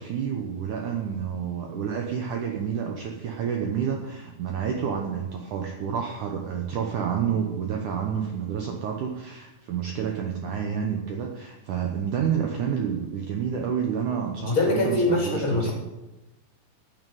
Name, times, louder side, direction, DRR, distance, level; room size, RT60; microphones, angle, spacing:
voice 1, 0.0-15.7, right 7 dB, 85° right, 2 dB, 1.7 m, -29 dB
voice 2, 14.5-15.7, left 2 dB, 30° left, -2 dB, 3.5 m, -23 dB
9.3 x 8.8 x 9.2 m, 0.99 s
omnidirectional pair, 5.1 m